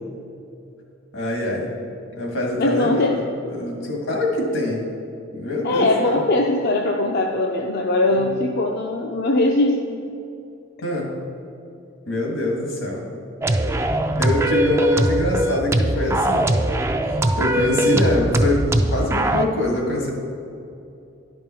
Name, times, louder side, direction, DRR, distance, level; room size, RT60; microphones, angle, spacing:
voice 1, 1.1-1.7 2.2-4.8 5.3-6.2 8.1-8.2 10.8-11.1 12.1-13.0 14.2-16.5 17.1-20.1, left 1 dB, 80° left, -1 dB, 1.9 m, -24 dB
voice 2, 2.6-3.2 5.6-10.0, left 2 dB, 55° left, 1 dB, 0.5 m, -20 dB
sound 1, 13.4-19.5, right 1 dB, 15° right, 0.3 m, -21 dB
10.5 x 5.3 x 4.5 m, 2.6 s
head